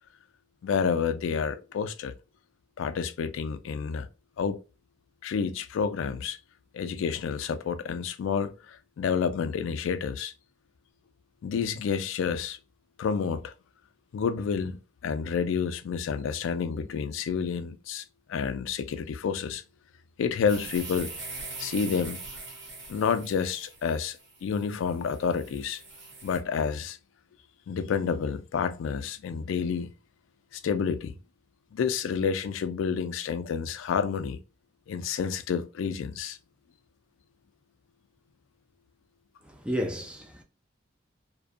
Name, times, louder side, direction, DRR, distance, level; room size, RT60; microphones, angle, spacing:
voice 1, 0.6-2.1 2.8-4.1 4.4-4.6 5.2-6.4 6.7-10.3 11.4-12.6 13.0-13.5 14.1-19.6 20.2-21.1 21.6-22.2 22.9-25.8 26.2-27.0 27.7-29.9 30.5-31.2 31.7-34.4 34.9-36.4, left 6 dB, 80° left, 0.3 m, -29 dB
sound 1, 20.5-26.4, right 3 dB, 65° right, 1.1 m, -42 dB
voice 2, 39.4-40.4, equal, 5° right, 0.4 m, -32 dB
2.4 x 2.2 x 2.4 m
head